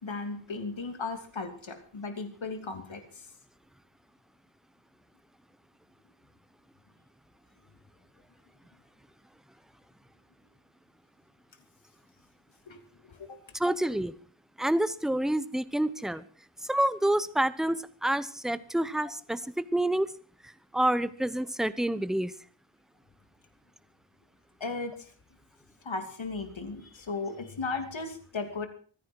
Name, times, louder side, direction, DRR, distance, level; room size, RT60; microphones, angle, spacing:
voice 1, 0.0-3.3 12.7-13.4 24.6-25.1 25.8-28.7, left 3 dB, 75° left, 6 dB, 2.9 m, -36 dB
voice 2, 13.5-14.2 14.6-16.2 16.7-20.1 20.7-22.3, right 1 dB, ahead, 15 dB, 0.8 m, -28 dB
24.5 x 9.9 x 4.6 m, 0.42 s
wide cardioid pair, 80°, 47 cm